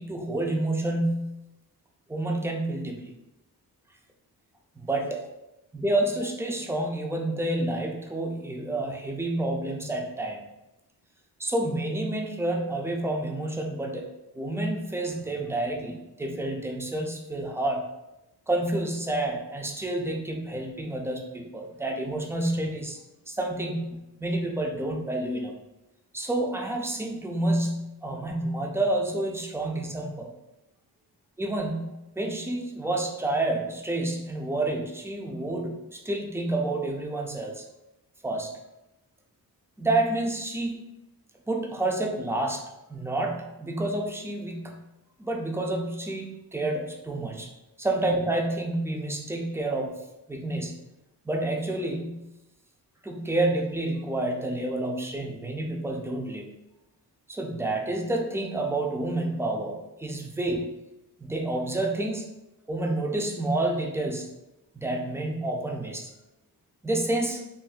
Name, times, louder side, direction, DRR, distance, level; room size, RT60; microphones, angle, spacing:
voice 1, 0.0-1.4 2.1-3.1 4.8-5.2 5.7-10.4 11.4-14.1 14.3-17.8 18.5-23.0 23.3-25.5 26.1-30.3 31.4-37.6 38.2-38.5 39.8-40.8 41.5-42.6 42.9-44.8 45.2-47.5 47.8-49.9 50.3-50.7 51.3-52.3 53.0-56.5 57.3-60.6 61.2-62.3 62.7-64.3 64.7-66.1 66.8-67.4, right 2 dB, 5° right, 1 dB, 0.3 m, -29 dB
3.8 x 2.6 x 2.3 m, 0.93 s
cardioid pair, 120°, 38 cm